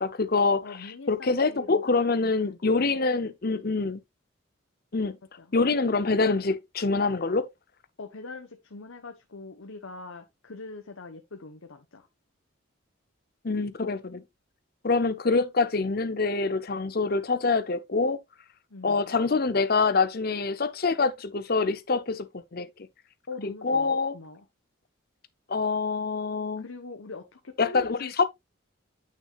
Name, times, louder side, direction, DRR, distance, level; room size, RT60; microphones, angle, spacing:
voice 1, 0.0-0.6 1.1-4.0 4.9-5.2 5.5-7.5 13.4-14.2 14.8-18.2 18.8-22.3 22.5-22.7 23.6-24.1 25.5-26.6 27.6-28.2, left 4 dB, 50° left, 0.7 m, -25 dB
voice 2, 0.6-3.0 5.4-5.5 8.0-12.1 18.7-19.1 23.3-24.4 26.6-28.2, left 3 dB, 80° left, 1.1 m, -43 dB
9.1 x 6.1 x 2.5 m
head